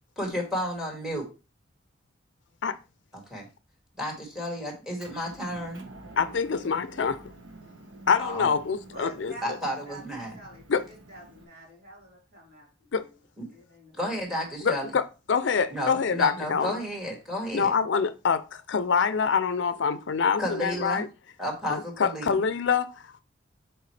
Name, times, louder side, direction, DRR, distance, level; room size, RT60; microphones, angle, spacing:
voice 1, 0.2-1.3 3.3-3.5 4.0-5.9 8.2-8.5 9.4-10.3 13.4-13.5 14.0-14.9 15.7-17.7 20.4-21.0 21.4-22.3, equal, ahead, 2.1 m, -32 dB
Motor vehicle (road) / Engine, 5.0-11.4, right 2 dB, 85° right, 1.1 m, -48 dB
voice 2, 6.2-7.2 8.1-9.3 10.7-10.8 12.9-13.1 14.6-16.8 17.5-21.1 21.7-23.2, left 6 dB, 70° left, 0.5 m, -26 dB
voice 3, 8.9-10.0 10.3-13.2 13.5-13.9, right 1 dB, 55° right, 3.6 m, -46 dB
6.7 x 4.5 x 3.2 m
head